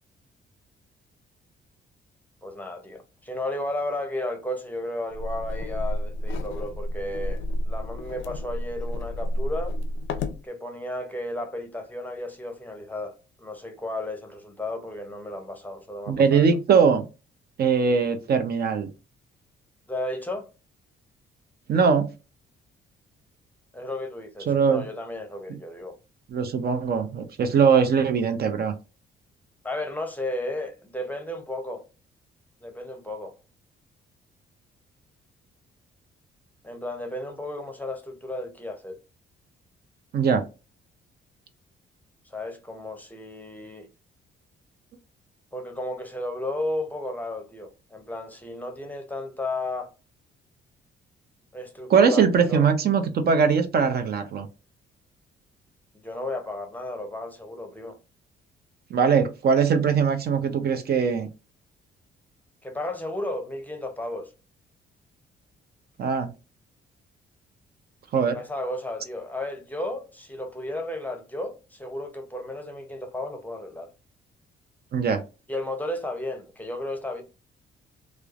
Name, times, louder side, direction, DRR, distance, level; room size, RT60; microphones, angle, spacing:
voice 1, 2.4-9.8 10.4-16.5 19.9-20.5 23.7-26.0 29.6-31.9 32.6-33.4 36.6-39.0 42.2-43.9 45.5-49.9 51.5-52.7 56.0-58.0 62.6-64.3 68.3-73.9 75.5-77.2, left 1 dB, 10° left, 0.6 m, -33 dB
sound 1, 5.1-10.4, left 1 dB, 75° left, 0.5 m, -30 dB
voice 2, 16.1-17.0 17.6-18.9 21.7-22.1 24.5-24.8 26.3-28.7 40.1-40.4 51.9-54.5 58.9-61.3 66.0-66.3 68.1-68.4 74.9-75.2, right 6 dB, 50° right, 0.5 m, -21 dB
3.1 x 2.0 x 2.4 m
cardioid pair, 90°, 20 cm